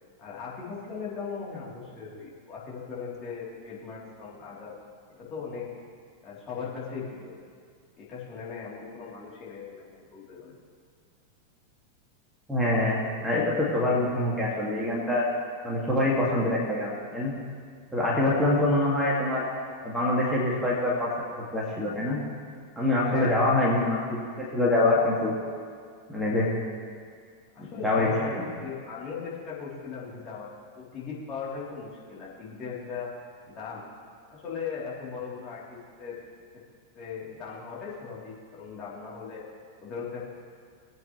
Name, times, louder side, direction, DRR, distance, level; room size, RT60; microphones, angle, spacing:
voice 1, 0.2-4.7 5.2-5.6 6.2-7.3 8.0-10.5 18.2-18.6 23.0-23.6 27.5-30.5 30.8-33.1 33.5-33.8 34.3-36.2 36.9-39.5 39.8-40.2, left 5 dB, 30° left, -7 dB, 3.7 m, -38 dB
voice 2, 12.5-15.3 15.6-17.3 17.9-19.4 19.8-21.1 21.5-22.2 22.8-25.3 26.1-26.5 27.6-28.1 28.4-28.5, left 2 dB, 5° right, -6 dB, 2.5 m, -25 dB
22.0 x 9.0 x 3.4 m, 2.1 s
figure-of-eight pair, 90°, 0 cm